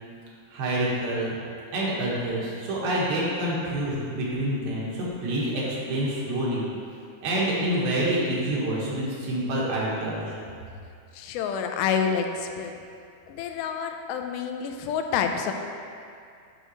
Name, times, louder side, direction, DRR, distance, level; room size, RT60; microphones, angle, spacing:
voice 1, 0.5-1.4 1.7-6.6 7.2-10.3, right 1 dB, 80° right, -6 dB, 3.3 m, -27 dB
voice 2, 11.1-12.8 13.3-15.5, left 7 dB, 85° left, 5 dB, 2.4 m, -28 dB
8.8 x 6.3 x 3.1 m, 2.4 s
omnidirectional pair, 4.2 m